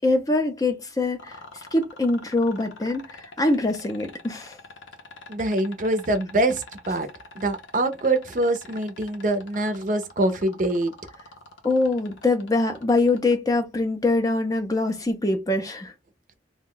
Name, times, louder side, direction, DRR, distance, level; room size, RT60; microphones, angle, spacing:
voice 1, 0.0-4.6 11.6-15.9, left 2 dB, 20° left, 0.4 m, -24 dB
sound 1, 1.2-13.3 15.0-15.1, left 3 dB, 80° left, 0.7 m, -44 dB
voice 2, 5.3-7.1 7.4-10.9, right 2 dB, 45° right, 0.5 m, -24 dB
2.5 x 2.1 x 3.7 m
head